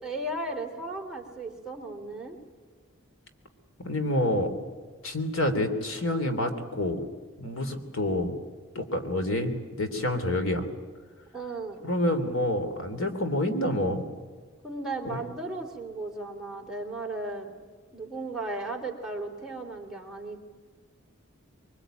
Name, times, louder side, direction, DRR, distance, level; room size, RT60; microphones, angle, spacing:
voice 1, 0.0-2.4 11.3-11.8 14.6-17.5 17.9-20.4, right 2 dB, 5° right, -1 dB, 3.2 m, -35 dB
voice 2, 3.8-4.5 5.0-7.0 7.4-8.4 8.7-10.7 11.8-14.0 15.1-15.2, left 1 dB, 80° left, 7 dB, 3.3 m, -28 dB
24.5 x 23.5 x 9.1 m, 1.5 s
head